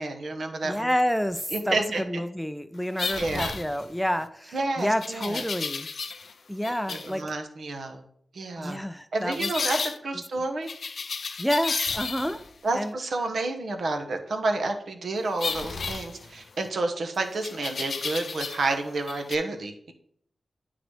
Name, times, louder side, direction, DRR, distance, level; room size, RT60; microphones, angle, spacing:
voice 1, 0.0-0.9 1.5-2.0 3.2-3.5 4.5-5.4 6.9-8.0 8.3-8.8 9.1-9.8 10.0-10.7 12.6-19.9, right 2 dB, 80° right, 5 dB, 1.0 m, -30 dB
voice 2, 0.6-5.9 6.5-7.3 8.6-9.5 11.4-12.4 12.7-13.0, equal, ahead, 11 dB, 0.3 m, -29 dB
sound 1, 3.0-4.2 5.0-6.3 6.6-7.2 9.3-10.0 10.7-12.5 15.4-16.7 17.4-18.8 19.0-19.4, left 4 dB, 70° left, 0.4 m, -33 dB
9.4 x 3.9 x 3.2 m, 0.66 s
wide cardioid pair, 105°, 0 cm